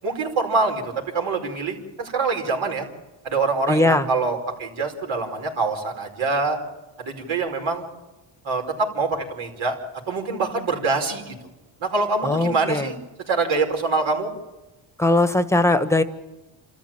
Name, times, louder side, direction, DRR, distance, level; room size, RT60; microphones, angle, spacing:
voice 1, 0.0-2.9 3.2-6.6 7.0-7.8 8.4-9.8 10.1-11.3 11.8-13.0 13.3-14.3, right 3 dB, 65° right, 2 dB, 5.0 m, -25 dB
voice 2, 3.7-4.0 12.2-12.9 15.0-16.0, left 2 dB, 5° left, 10 dB, 1.5 m, -19 dB
28.5 x 13.5 x 8.9 m, 1.1 s
cardioid pair, 95°, 50 cm